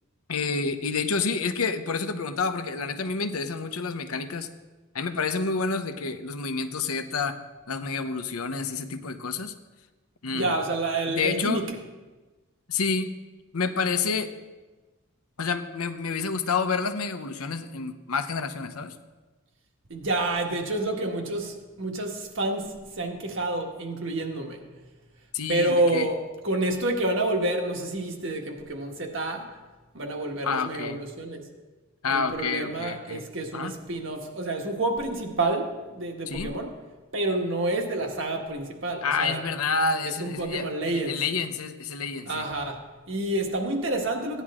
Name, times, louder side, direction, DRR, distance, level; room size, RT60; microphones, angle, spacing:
voice 1, 0.3-4.5 4.9-7.4 7.7-9.5 10.2-10.5 11.1-11.6 12.7-13.1 13.5-14.3 15.4-18.9 25.3-26.1 30.4-31.0 32.0-33.2 33.5-33.8 36.3-36.5 39.0-42.5, left 4 dB, 85° left, 9 dB, 0.8 m, -29 dB
voice 2, 10.3-11.8 19.9-24.6 25.5-29.5 29.9-31.4 32.1-36.7 37.1-39.4 40.0-41.2 42.3-44.4, right 2 dB, 60° right, 2 dB, 1.6 m, -29 dB
16.0 x 10.0 x 3.7 m, 1.2 s
head